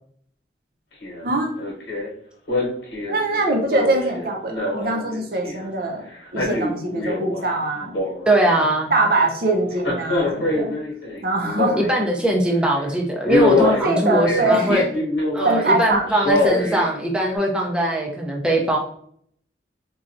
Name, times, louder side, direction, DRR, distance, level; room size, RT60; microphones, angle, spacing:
Male speech man speaking, 1.0-1.3 1.6-2.1 2.5-5.7 6.1-7.5 7.8-8.6 9.7-12.1 12.6-12.8 13.2-15.6 16.1-16.9 17.3-17.4, left 2 dB, 75° left, 1.1 m, -24 dB
voice 1, 3.1-6.1 6.3-8.0 8.9-10.7 11.2-11.8 13.6-14.8 15.4-16.1 16.4-16.5, right 2 dB, 55° right, 2 dB, 0.6 m, -22 dB
voice 2, 8.3-8.9 11.7-14.8 15.3-18.8, right 1 dB, 5° right, -1 dB, 0.4 m, -21 dB
4.0 x 2.3 x 2.5 m, 0.64 s
head